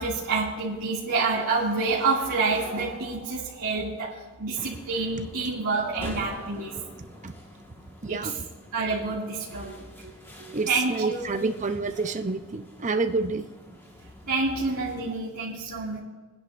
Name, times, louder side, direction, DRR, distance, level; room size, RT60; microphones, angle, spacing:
voice 1, 0.0-6.8 8.1-8.3 8.7-10.1 10.4-11.3 14.3-16.0, right 3 dB, 75° right, -9 dB, 2.4 m, -28 dB
sound 1, 4.6-15.1, equal, 10° left, 1.6 m, -45 dB
voice 2, 8.0-8.4 10.5-13.5, right 3 dB, 35° right, 8 dB, 0.7 m, -28 dB
22.0 x 10.5 x 2.6 m, 1.3 s
head